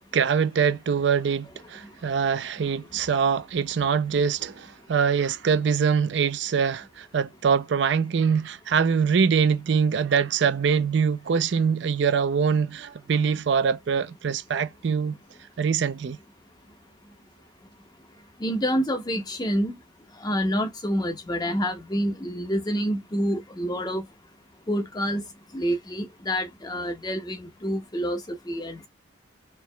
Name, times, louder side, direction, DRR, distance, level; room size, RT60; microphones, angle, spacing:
voice 1, 0.1-15.1 15.6-16.2, right 6 dB, 65° right, 0.4 m, -23 dB
voice 2, 18.4-19.8 20.2-24.0 24.7-25.2 25.5-28.9, equal, 20° left, 0.7 m, -27 dB
4.5 x 2.9 x 2.2 m
head